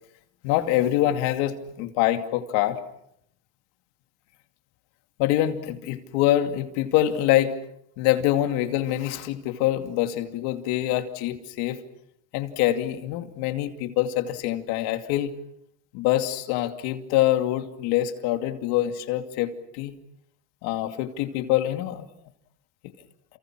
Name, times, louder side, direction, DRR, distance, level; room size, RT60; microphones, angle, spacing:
voice 1, 0.4-2.8 5.2-7.6 8.0-11.8 12.3-15.3 15.9-19.9 20.6-22.1, left 13 dB, 85° left, 7 dB, 2.6 m, -25 dB
30.0 x 28.5 x 6.1 m, 0.75 s
supercardioid pair, 105°, 38 cm